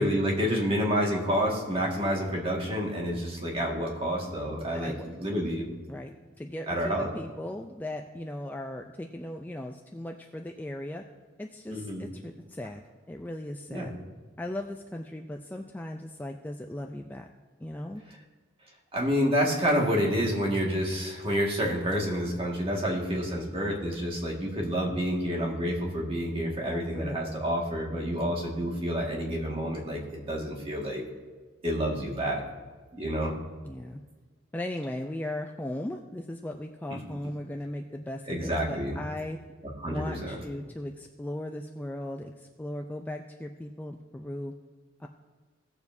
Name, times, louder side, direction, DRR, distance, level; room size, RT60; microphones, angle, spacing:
voice 1, 0.0-5.7 6.7-7.1 11.7-12.1 13.7-13.9 18.9-31.0 31.6-32.4 32.9-33.3 36.9-37.0 38.3-39.0 39.8-40.4, equal, 30° right, -2 dB, 1.8 m, -29 dB
voice 2, 4.7-5.1 5.9-11.0 11.4-12.8 13.1-13.9 14.4-17.3 17.6-18.0 26.6-27.4 33.6-34.0 34.5-39.4 39.9-44.5 45.0-45.1, left 1 dB, 10° left, 3 dB, 0.3 m, -37 dB
17.5 x 7.1 x 2.7 m, 1.4 s
head